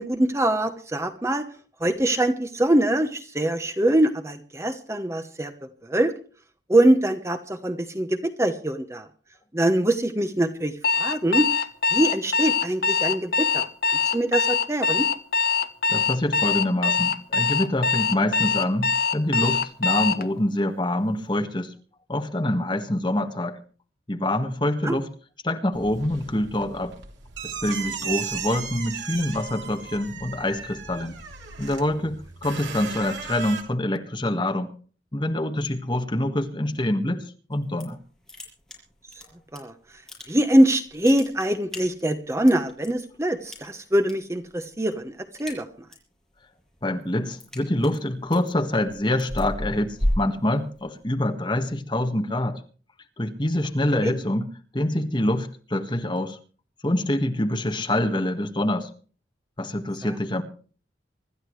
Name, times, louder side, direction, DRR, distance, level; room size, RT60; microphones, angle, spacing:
voice 1, 0.0-1.4 1.8-5.5 5.9-6.1 6.7-9.1 9.5-10.7 11.0-11.4 11.9-13.7 14.0-15.1 24.8-25.0 39.5-39.7 40.3-45.1 45.4-45.7 54.0-54.1 60.0-60.1, right 1 dB, 15° right, 7 dB, 1.0 m, -23 dB
Alarm, 10.8-20.2, left 5 dB, 55° left, 1.1 m, -23 dB
voice 2, 15.9-21.7 22.1-23.6 24.1-25.1 25.4-27.0 27.4-31.1 31.6-34.7 35.1-37.2 37.5-38.0 46.8-52.6 53.2-54.5 54.7-56.4 56.8-58.9 59.6-60.4, left 1 dB, 25° left, 4 dB, 1.7 m, -25 dB
sound 1, 25.7-33.6, right 7 dB, 85° right, 3.3 m, -36 dB
sound 2, 37.5-38.0 38.3-39.6 39.9-40.6 40.9-42.9 43.5-44.1 44.4-44.8 45.1-46.1 46.5-51.0, equal, 5° left, 6.5 m, -32 dB
25.5 x 13.5 x 3.3 m, 0.41 s
head